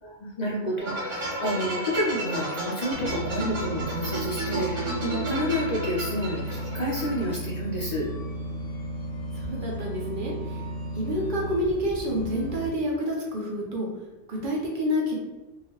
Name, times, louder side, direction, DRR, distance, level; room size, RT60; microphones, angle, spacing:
voice 1, 0.0-8.1, equal, 60° left, -5 dB, 0.4 m, -30 dB
sound 1, 0.8-7.3, right 1 dB, 75° right, 1.3 m, -33 dB
sound 2, 2.9-12.7, equal, 80° left, 0.9 m, -34 dB
voice 2, 9.4-10.6 11.0-13.9 14.3-15.2, equal, 55° right, -2 dB, 0.7 m, -28 dB
2.8 x 2.3 x 2.9 m, 1.1 s
omnidirectional pair, 1.2 m